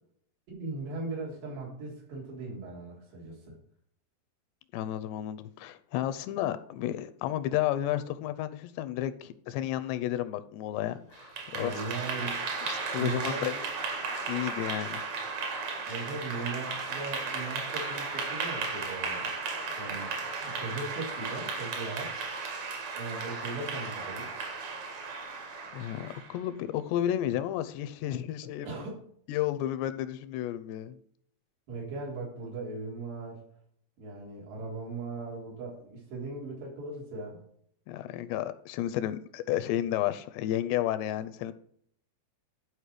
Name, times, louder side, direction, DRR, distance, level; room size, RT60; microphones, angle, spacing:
voice 1, 0.5-3.5 11.5-12.4 13.0-13.6 15.9-19.3 19.8-20.2 20.5-22.2 23.0-24.3 28.7-29.0 31.7-33.4 34.0-37.4, right 3 dB, 75° right, -3 dB, 5.7 m, -38 dB
voice 2, 4.7-11.7 12.7-13.5 14.3-15.0 25.7-28.9 29.3-31.0 37.9-41.5, left 12 dB, 85° left, 13 dB, 2.7 m, -32 dB
Clapping / Applause, 11.1-26.4, right 4 dB, 50° right, 2.6 m, -35 dB
12.0 x 5.0 x 4.9 m, 0.64 s
omnidirectional pair, 4.9 m